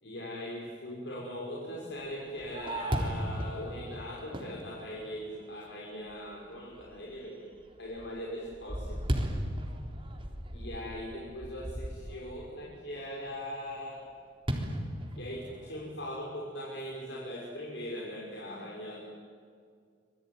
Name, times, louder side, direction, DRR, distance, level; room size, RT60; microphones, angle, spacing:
voice 1, 0.0-7.5 7.8-9.0 10.5-14.1 15.2-19.2, equal, 75° left, -4 dB, 6.0 m, -40 dB
Fireworks, 2.0-5.6 6.1-6.2 6.7-7.1 7.5-12.4 14.5-15.8, equal, 30° right, 3.7 m, -36 dB
26.5 x 23.0 x 9.7 m, 2.1 s
head